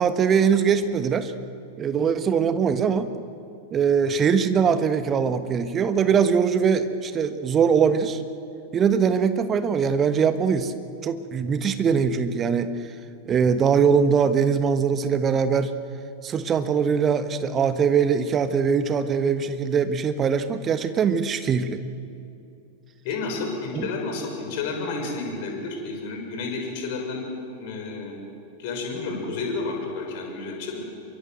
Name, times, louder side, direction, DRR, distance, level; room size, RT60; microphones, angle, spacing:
voice 1, 0.0-1.3 1.8-3.1 3.7-8.2 8.7-10.7 11.0-12.7 13.3-15.7 16.2-21.8 23.7-23.9, right 6 dB, 25° right, 10 dB, 1.4 m, -22 dB
voice 2, 23.0-27.2 27.5-28.1 28.6-30.8, left 3 dB, 50° left, 2 dB, 6.3 m, -31 dB
27.0 x 23.5 x 8.0 m, 2.6 s
figure-of-eight pair, 90°, 0 cm